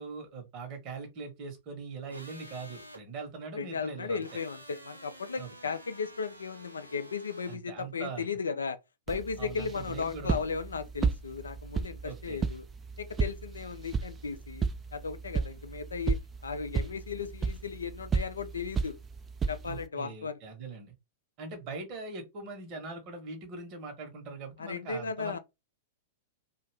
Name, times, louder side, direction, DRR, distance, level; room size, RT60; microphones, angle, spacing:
voice 1, 0.0-4.4 5.4-5.7 7.5-8.3 9.4-10.4 12.0-12.4 19.6-20.9 21.4-25.4, right 4 dB, 40° right, 1.1 m, -42 dB
sound 1, 2.1-3.0 4.2-7.6, right 1 dB, 85° right, 0.6 m, -50 dB
voice 2, 3.6-8.8 9.1-12.6 13.0-16.2 16.4-19.0 19.5-20.4 24.6-25.4, left 5 dB, 70° left, 0.4 m, -36 dB
sound 2, 9.1-19.9, right 5 dB, 20° right, 0.4 m, -34 dB
2.5 x 2.4 x 3.3 m
figure-of-eight pair, 100°, 0 cm